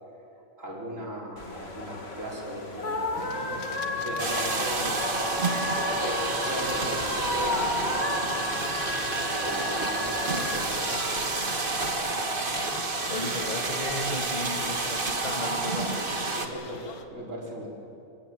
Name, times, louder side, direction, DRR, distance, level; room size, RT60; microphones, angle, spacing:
voice 1, 0.6-8.1 9.3-11.7 16.3-17.7, right 1 dB, 55° right, -3 dB, 5.2 m, -38 dB
sound 1, 1.4-11.9, left 2 dB, 45° left, 2.4 m, -33 dB
sound 2, 3.1-17.0, left 5 dB, 80° left, 1.9 m, -43 dB
voice 2, 4.0-4.3 10.7-11.5 13.1-16.1, left 2 dB, 30° left, 4 dB, 1.9 m, -37 dB
sound 3, 4.2-16.5, right 3 dB, 35° right, 1.7 m, -29 dB
25.0 x 18.0 x 7.9 m, 2.6 s
omnidirectional pair, 1.6 m